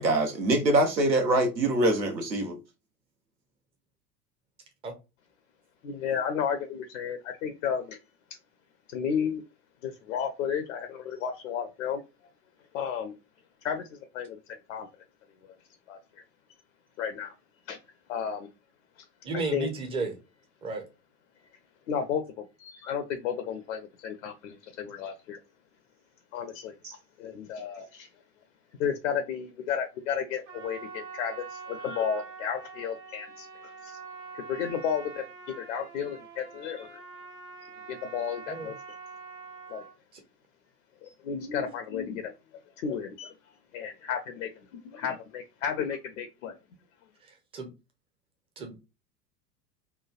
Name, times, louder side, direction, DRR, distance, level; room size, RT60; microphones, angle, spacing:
voice 1, 0.0-2.6 26.8-26.9, right 1 dB, 85° right, 0.8 m, -24 dB
voice 2, 5.8-8.0 8.9-9.4 9.8-12.0 12.7-13.2 13.6-14.4 14.7-14.9 15.9-16.0 17.0-17.3 17.7-17.8 18.1-18.5 19.5-19.7 21.9-25.4 26.3-26.7 27.2-28.1 28.8-34.0 34.3-35.3 35.6-37.0 37.9-38.7 39.7-39.8 41.0-42.3 42.8-43.3 43.7-46.6, left 7 dB, 55° left, 0.5 m, -33 dB
voice 3, 19.2-20.1 20.6-20.8 38.5-38.7 47.5-47.7 48.6-48.9, right 3 dB, 10° right, 0.5 m, -33 dB
Trumpet, 30.4-39.9, right 5 dB, 50° right, 1.1 m, -44 dB
3.0 x 2.2 x 2.4 m
figure-of-eight pair, 85°, 49 cm